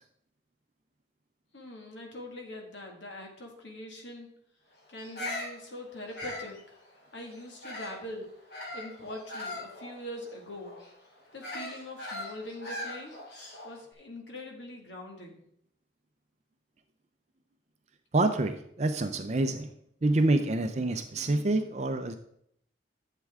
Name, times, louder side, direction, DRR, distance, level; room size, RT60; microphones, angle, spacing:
voice 1, 1.5-4.3 4.9-6.8 7.1-8.3 8.7-10.8 11.3-13.1 13.6-15.4, left 1 dB, 80° left, 1 dB, 2.0 m, -43 dB
Bird vocalization bird call bird song, 5.0-8.1 8.5-13.8, left 1 dB, 60° left, 2.7 m, -40 dB
voice 2, 18.1-19.7 20.0-22.1, right 2 dB, 40° right, 7 dB, 0.5 m, -27 dB
11.0 x 7.5 x 3.6 m, 0.72 s
head